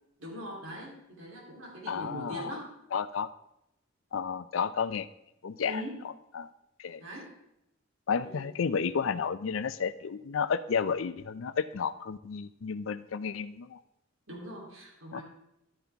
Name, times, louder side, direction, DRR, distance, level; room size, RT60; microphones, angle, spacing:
voice 1, 0.2-2.7 5.6-6.0 7.0-7.3 8.2-8.5 14.3-15.2, equal, 90° right, -2 dB, 3.2 m, -41 dB
voice 2, 1.9-2.6 2.9-3.3 4.1-5.1 5.4-5.8 6.3-6.5 6.8-7.0 8.1-13.8 15.1-15.2, left 6 dB, 75° left, 14 dB, 0.5 m, -32 dB
11.5 x 9.6 x 3.5 m, 0.82 s
head